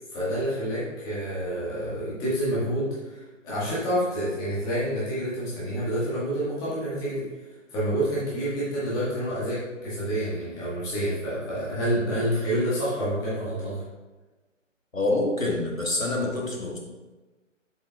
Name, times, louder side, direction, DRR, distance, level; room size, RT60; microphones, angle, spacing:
voice 1, 0.1-7.3 7.7-13.8, equal, 10° left, -10 dB, 1.6 m, -28 dB
voice 2, 14.9-16.8, left 2 dB, 90° left, -1 dB, 1.9 m, -26 dB
7.5 x 7.5 x 2.4 m, 1.2 s
figure-of-eight pair, 145°, 39 cm